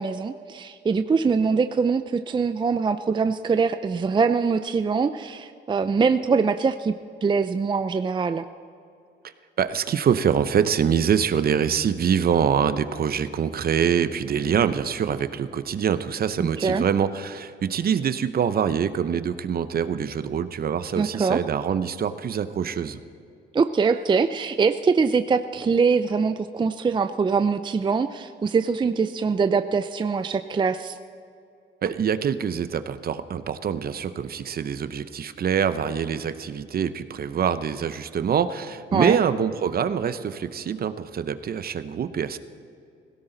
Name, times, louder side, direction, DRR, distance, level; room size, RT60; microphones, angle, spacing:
voice 1, 0.0-6.9 7.2-8.5 16.4-16.8 21.0-21.4 23.5-30.9 38.9-39.2, right 5 dB, 25° right, 11 dB, 0.4 m, -23 dB
voice 2, 9.2-23.0 31.8-42.4, right 7 dB, 50° right, 12 dB, 0.8 m, -25 dB
17.0 x 17.0 x 4.0 m, 2.5 s
cardioid pair, 90°, 20 cm